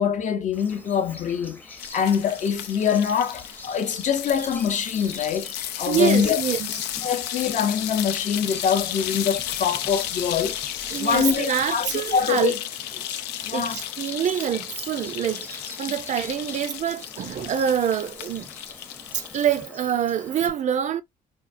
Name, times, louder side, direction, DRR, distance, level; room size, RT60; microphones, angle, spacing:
voice 1, 0.0-6.4 7.0-10.6 11.0-12.6 13.1-13.8 15.8-15.9, left 7 dB, 45° left, 0.6 m, -24 dB
Bird vocalization bird call bird song, 0.5-20.5, left 2 dB, 10° left, 0.7 m, -44 dB
sound 1, 1.8-19.7, left 12 dB, 90° left, 0.5 m, -34 dB
voice 2, 5.9-6.7 10.9-12.6 13.5-18.5 19.1-21.0, right 9 dB, 45° right, 0.5 m, -25 dB
4.2 x 2.2 x 2.5 m
cardioid pair, 110°, 17 cm